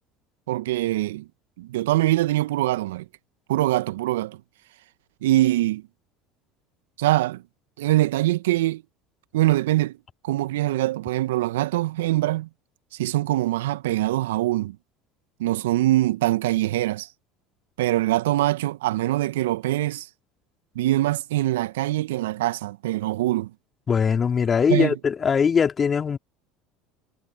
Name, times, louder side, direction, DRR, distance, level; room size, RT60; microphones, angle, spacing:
voice 1, 0.5-1.3 1.6-3.0 3.5-4.4 5.2-5.8 7.0-7.4 7.8-8.8 9.3-10.0 10.2-12.5 12.9-14.8 15.4-17.1 17.8-20.1 20.7-23.5 24.7-24.9, right 16 dB, 70° right, 1.5 m, -23 dB
voice 2, 23.9-26.2, left 6 dB, 30° left, 4.3 m, -21 dB
hypercardioid pair, 70°, 0 cm